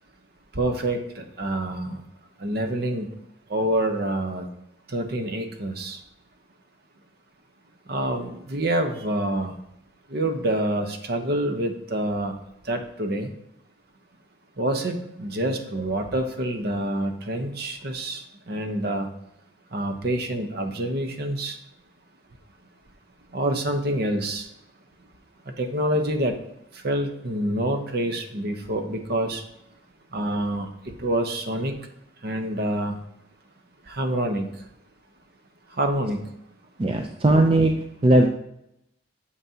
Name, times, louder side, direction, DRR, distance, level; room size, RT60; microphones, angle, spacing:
voice 1, 0.5-2.0 2.4-3.1 3.5-4.5 4.9-6.0 7.9-9.5 10.1-12.4 12.7-13.3 14.6-19.1 19.7-21.6 23.3-24.5 25.6-26.4 26.8-29.4 30.1-30.7 31.0-31.7 32.2-33.0 33.9-34.5 35.8-36.2, right 1 dB, 50° right, 6 dB, 0.8 m, -27 dB
voice 2, 36.8-38.3, right 1 dB, 25° right, 4 dB, 0.4 m, -19 dB
9.2 x 6.4 x 2.8 m, 0.79 s
head